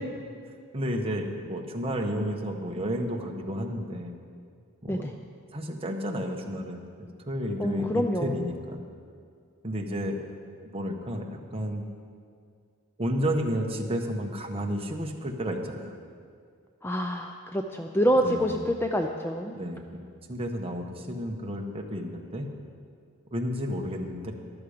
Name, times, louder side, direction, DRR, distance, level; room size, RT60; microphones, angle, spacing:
voice 1, 0.7-4.1 4.8-5.1 5.5-8.8 9.6-10.2 10.7-11.9 13.0-15.9 18.2-18.6 19.5-20.0 20.3-22.5 23.3-24.3, equal, 25° right, 2 dB, 1.1 m, -31 dB
voice 2, 7.6-8.4 16.8-19.6, equal, 10° left, 4 dB, 0.4 m, -27 dB
13.5 x 12.0 x 5.0 m, 2.2 s
head